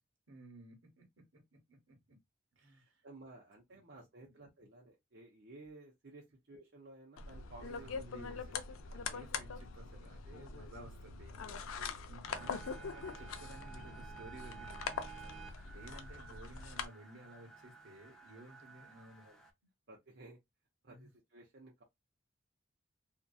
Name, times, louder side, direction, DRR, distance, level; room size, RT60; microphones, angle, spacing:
voice 1, 0.3-1.1 1.3-2.2 2.5-3.0 3.7-3.8 4.2-4.3 7.8-14.9 15.6-19.3 20.8-21.1, right 1 dB, 75° right, 1.0 m, -55 dB
voice 2, 2.6-8.3 9.8-9.9 11.8-12.0 15.2-15.4 18.3-18.5 19.2-19.4 19.9-20.4 20.8-21.8, right 2 dB, 55° right, 0.6 m, -56 dB
sound 1, 7.2-16.9, left 5 dB, 85° left, 0.4 m, -43 dB
sound 2, 12.2-19.5, right 5 dB, ahead, 0.4 m, -53 dB
2.6 x 2.3 x 2.2 m
head